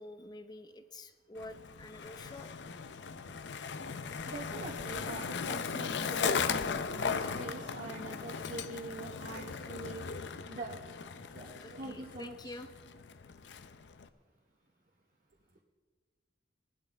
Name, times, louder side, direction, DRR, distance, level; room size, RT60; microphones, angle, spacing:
voice 1, 0.0-2.5 11.6-12.7, left 2 dB, 25° left, 9 dB, 0.7 m, -48 dB
Skateboard, 1.4-14.1, left 5 dB, 75° left, 0.6 m, -37 dB
voice 2, 4.3-10.0 10.5-10.8 11.3-12.6, right 2 dB, 50° right, 0 dB, 0.9 m, -44 dB
18.5 x 11.5 x 3.4 m, 1.5 s
head